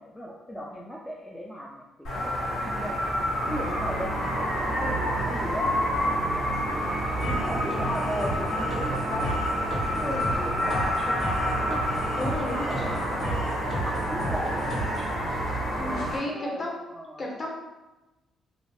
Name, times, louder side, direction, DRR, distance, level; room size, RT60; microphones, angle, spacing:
voice 1, 0.0-3.1 3.5-6.5 6.9-7.1 7.4-9.3 9.9-11.8 12.6-13.4 13.8-15.0 15.9-17.3, equal, 5° left, -3 dB, 0.3 m, -37 dB
sound 1, 2.0-16.2, left 1 dB, 85° left, 1.3 m, -29 dB
sound 2, 2.4-16.1, right 3 dB, 90° right, 0.7 m, -34 dB
voice 2, 7.1-7.5 12.2-13.0 15.8-16.7 17.2-17.5, left 1 dB, 30° left, -2 dB, 0.7 m, -33 dB
sound 3, 7.2-15.2, left 1 dB, 55° left, 1.2 m, -35 dB
2.6 x 2.0 x 3.0 m, 1.0 s
cardioid pair, 90°, 0 cm